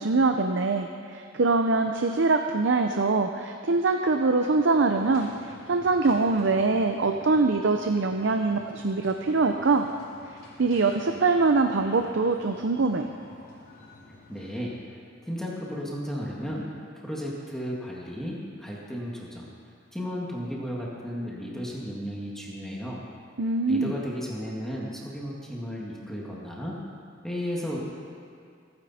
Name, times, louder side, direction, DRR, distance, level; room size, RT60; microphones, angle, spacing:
voice 1, 0.0-9.9 10.6-13.1 23.4-23.9, right 3 dB, 65° right, 5 dB, 0.6 m, -23 dB
sound 1, 4.9-14.7, left 1 dB, 50° left, 3.1 m, -50 dB
voice 2, 14.3-14.8 15.2-16.7 17.0-19.5 19.9-23.1 23.7-26.8 27.2-27.8, equal, ahead, -5 dB, 2.0 m, -34 dB
27.0 x 9.7 x 4.3 m, 2.3 s
head